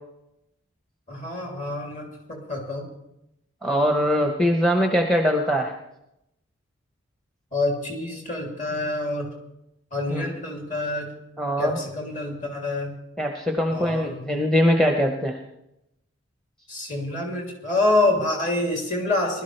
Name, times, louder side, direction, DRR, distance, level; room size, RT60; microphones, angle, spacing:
voice 1, 1.1-2.9 7.5-9.3 9.9-11.1 11.6-12.9 13.7-14.2 16.7-19.4, left 2 dB, 35° left, 0 dB, 2.9 m, -26 dB
voice 2, 3.6-5.7 10.1-10.3 11.4-11.7 13.2-15.4, equal, 5° left, 2 dB, 0.8 m, -22 dB
20.5 x 12.5 x 3.3 m, 0.84 s
head